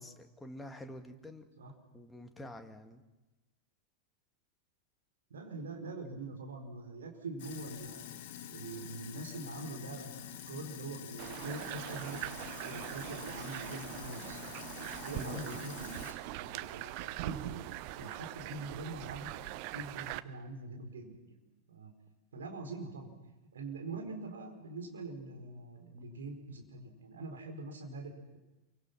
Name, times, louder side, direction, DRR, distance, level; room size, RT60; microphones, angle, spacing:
voice 1, 0.0-1.5 1.9-3.0 15.1-15.6, left 1 dB, 5° left, 5 dB, 2.1 m, -47 dB
voice 2, 5.3-8.1 8.5-14.4 15.0-17.6 17.9-21.4 21.7-21.9 22.3-23.1 23.5-28.4, right 2 dB, 65° right, 3 dB, 4.4 m, -44 dB
Sink (filling or washing), 7.4-16.1, left 10 dB, 50° left, 1.7 m, -47 dB
sound 1, 11.2-20.2, right 17 dB, 45° right, 0.8 m, -42 dB
27.5 x 24.0 x 6.0 m, 1.1 s
figure-of-eight pair, 90°, 0 cm